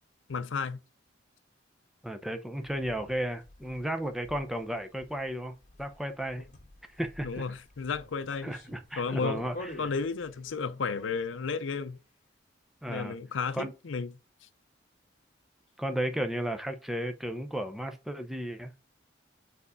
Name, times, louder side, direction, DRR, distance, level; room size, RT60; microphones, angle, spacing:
voice 1, 0.3-0.8 7.2-8.5 9.0-9.5 9.8-12.0 12.9-14.1 14.4-14.5, left 5 dB, 75° left, 0.6 m, -33 dB
voice 2, 2.0-6.4 7.0-7.4 8.4-9.7 12.8-13.2 13.5-13.7 15.8-18.7, right 1 dB, ahead, 0.6 m, -34 dB
sound 1, 2.5-11.5, left 1 dB, 40° left, 1.5 m, -49 dB
4.6 x 4.2 x 4.9 m
head